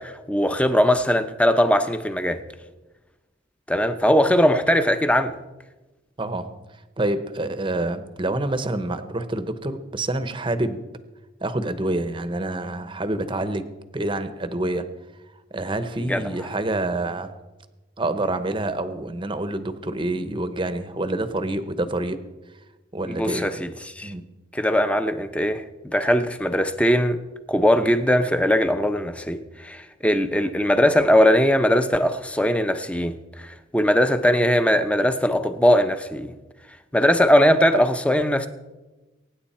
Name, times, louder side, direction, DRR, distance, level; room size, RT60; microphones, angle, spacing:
voice 1, 0.0-2.4 3.7-5.3 16.0-16.2 23.1-24.1 24.5-25.6 25.9-27.2 27.5-36.3 36.9-38.5, equal, 5° left, 0.8 m, -20 dB
voice 2, 6.2-6.5 7.0-10.8 11.4-13.6 13.9-14.8 15.5-17.3 18.0-22.2 22.9-23.6 24.0-24.2, right 2 dB, 25° right, 0.9 m, -27 dB
23.5 x 9.6 x 4.3 m
head